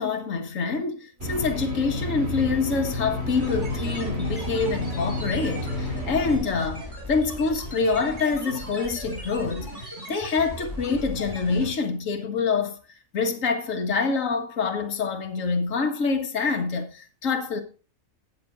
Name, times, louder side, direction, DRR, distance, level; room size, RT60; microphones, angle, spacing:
voice 1, 0.0-12.8 13.1-17.6, left 4 dB, 65° left, 1.8 m, -26 dB
sound 1, 1.2-6.4, left 1 dB, 45° right, 2.9 m, -30 dB
sound 2, 3.4-11.7, equal, 15° right, 5.9 m, -37 dB
19.0 x 6.7 x 2.5 m
omnidirectional pair, 1.5 m